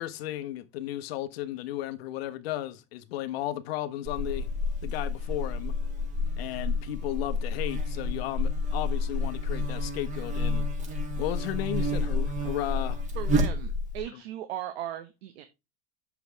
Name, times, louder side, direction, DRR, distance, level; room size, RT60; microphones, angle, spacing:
voice 1, 0.0-4.5 4.8-5.7 6.4-13.0, left 14 dB, 70° left, 1.2 m, -34 dB
Buzz, 4.0-14.0, left 2 dB, 25° right, 2.7 m, -29 dB
voice 2, 13.1-15.5, right 12 dB, 75° right, 1.4 m, -37 dB
9.2 x 7.0 x 3.4 m
supercardioid pair, 130°, 31 cm